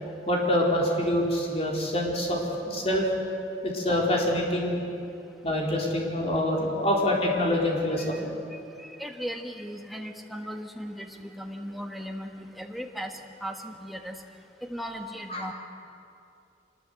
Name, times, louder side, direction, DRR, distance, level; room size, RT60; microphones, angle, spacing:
voice 1, 0.3-3.1 3.6-4.8 5.4-8.3 15.3-15.5, left 1 dB, 35° left, -2 dB, 4.0 m, -26 dB
voice 2, 9.0-14.2 14.6-15.5, equal, ahead, 3 dB, 1.5 m, -37 dB
25.0 x 20.5 x 7.8 m, 2.6 s
head